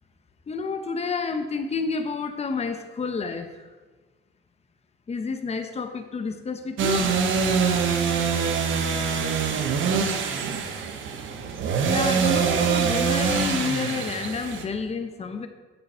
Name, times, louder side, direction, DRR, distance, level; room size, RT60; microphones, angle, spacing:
voice 1, 0.5-3.5 5.1-7.2 11.9-15.5, left 4 dB, 30° left, 8 dB, 0.9 m, -29 dB
sound 1, 6.8-14.6, right 6 dB, 75° right, 1.1 m, -24 dB
7.9 x 7.9 x 5.6 m, 1.3 s
cardioid pair, 90°, 20 cm